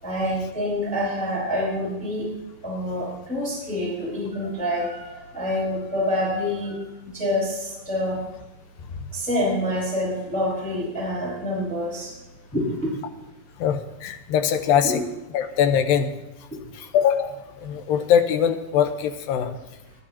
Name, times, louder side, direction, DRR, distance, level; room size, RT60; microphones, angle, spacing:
voice 1, 0.0-2.3 2.6-6.8 7.1-8.2 9.1-12.1 12.5-12.9 14.8-15.0 16.5-16.6, left 1 dB, ahead, -6 dB, 4.7 m, -27 dB
voice 2, 13.6-15.0 15.3-16.1 16.8-17.4 17.6-19.5, left 8 dB, 85° left, 7 dB, 2.8 m, -22 dB
20.0 x 12.0 x 2.9 m, 1.0 s
omnidirectional pair, 4.0 m